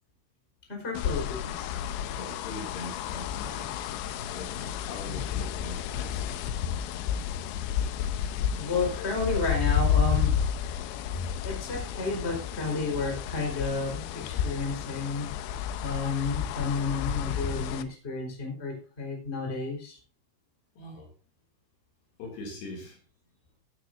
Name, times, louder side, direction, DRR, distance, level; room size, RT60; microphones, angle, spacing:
voice 1, 0.7-1.7 5.1-5.2 8.5-10.3 11.1-15.3 15.8-20.0, left 3 dB, 15° left, 1 dB, 3.8 m, -31 dB
sound 1, 0.9-17.8, left 8 dB, 80° left, 2.7 m, -31 dB
voice 2, 2.2-3.9 4.2-6.2 20.8-21.1 22.2-23.0, left 2 dB, 60° left, 0 dB, 4.4 m, -42 dB
15.5 x 9.6 x 2.6 m, 0.38 s
omnidirectional pair, 5.7 m